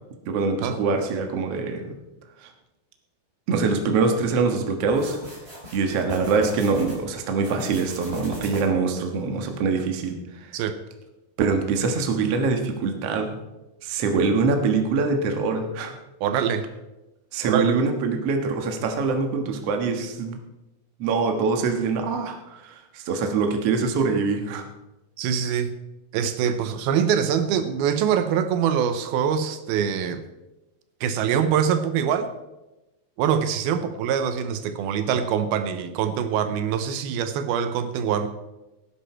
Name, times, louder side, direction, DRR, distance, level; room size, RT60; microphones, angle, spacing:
voice 1, 0.3-1.9 2.4-2.5 3.5-5.2 5.7-10.5 11.4-13.3 13.8-15.9 17.3-20.4 21.0-24.6, right 4 dB, 50° right, 4 dB, 2.0 m, -24 dB
sound 1, 4.9-7.0 7.4-8.9, equal, 15° right, 4.0 m, -39 dB
voice 2, 16.2-16.7 17.4-17.7 25.2-25.8 26.1-30.2 31.0-32.3 33.2-38.3, right 8 dB, 80° right, 10 dB, 2.7 m, -24 dB
17.5 x 10.0 x 4.5 m, 1.0 s
omnidirectional pair, 4.4 m